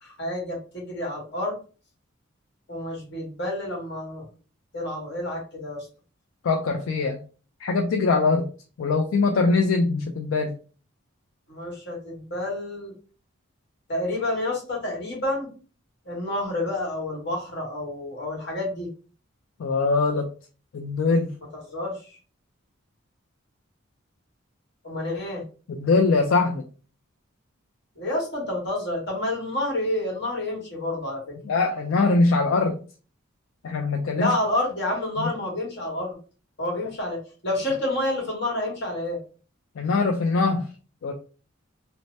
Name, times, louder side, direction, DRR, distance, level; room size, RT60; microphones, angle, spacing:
voice 1, 0.0-1.6 2.7-4.2 4.7-5.9 11.5-12.9 13.9-15.5 16.0-18.9 21.5-22.2 24.8-25.4 28.0-31.2 34.1-36.2 36.6-39.2, left 1 dB, 55° left, -2 dB, 1.3 m, -29 dB
voice 2, 6.4-7.2 7.6-8.5 8.8-10.5 19.6-20.3 20.7-21.3 25.7-26.6 31.4-32.8 33.6-34.3 35.2-35.3 39.8-40.7 41.0-41.1, left 3 dB, 75° left, 3 dB, 0.4 m, -22 dB
2.7 x 2.1 x 3.1 m, 0.37 s
head